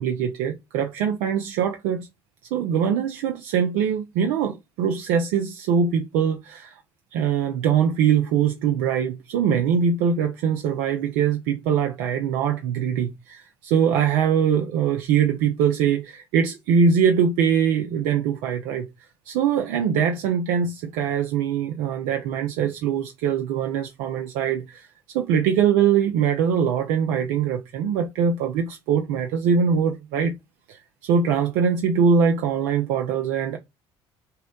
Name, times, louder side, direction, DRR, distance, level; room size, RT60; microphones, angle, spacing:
voice 1, 0.0-2.1 2.5-6.8 7.1-18.9 19.3-24.9 25.1-30.3 30.7-33.6, right 7 dB, 75° right, 0.6 m, -22 dB
5.5 x 2.2 x 2.2 m
hypercardioid pair, 65°, 14 cm